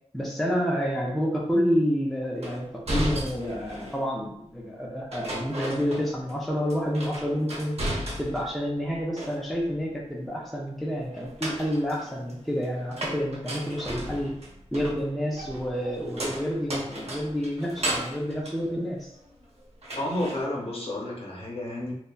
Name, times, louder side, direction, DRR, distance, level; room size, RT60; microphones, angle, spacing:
voice 1, 0.1-7.8 8.2-14.3 14.7-19.1, equal, ahead, -2 dB, 0.4 m, -29 dB
sound 1, 2.4-4.1 5.1-6.4 6.7-8.6 8.9-9.7 11.1-19.4 19.8-20.4, right 1 dB, 65° right, 0.7 m, -35 dB
voice 2, 20.0-21.9, left 1 dB, 55° left, -2 dB, 0.7 m, -31 dB
2.7 x 2.2 x 2.3 m, 0.76 s
wide cardioid pair, 90°, 11 cm